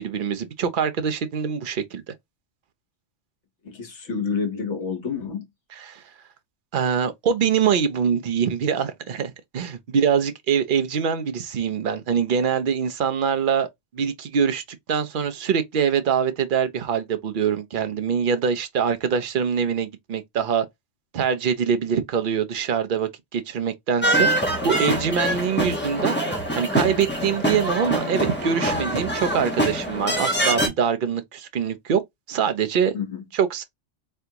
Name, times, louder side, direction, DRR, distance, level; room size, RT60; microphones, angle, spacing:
voice 1, 0.0-2.0 5.8-6.0 6.7-13.7 13.9-20.7 21.1-26.2 26.5-32.0 32.3-32.9 33.3-33.6, right 7 dB, 55° right, 0.7 m, -24 dB
voice 2, 3.6-5.4 32.9-33.2, left 5 dB, 65° left, 1.5 m, -28 dB
sound 1, 24.0-30.7, right 1 dB, 10° left, 1.1 m, -24 dB
3.5 x 3.4 x 2.8 m
omnidirectional pair, 1.3 m